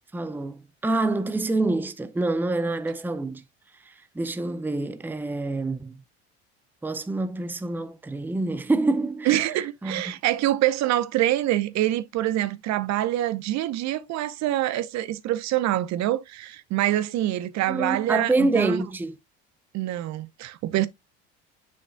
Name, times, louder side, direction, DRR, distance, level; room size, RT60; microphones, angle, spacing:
voice 1, 0.1-3.4 3.9-6.0 6.8-9.5 9.8-10.2 17.7-19.2, right 2 dB, 5° right, 0.6 m, -27 dB
voice 2, 9.3-18.8 19.7-20.9, right 14 dB, 55° right, 0.8 m, -25 dB
7.3 x 6.0 x 2.2 m
hypercardioid pair, 75°, 33 cm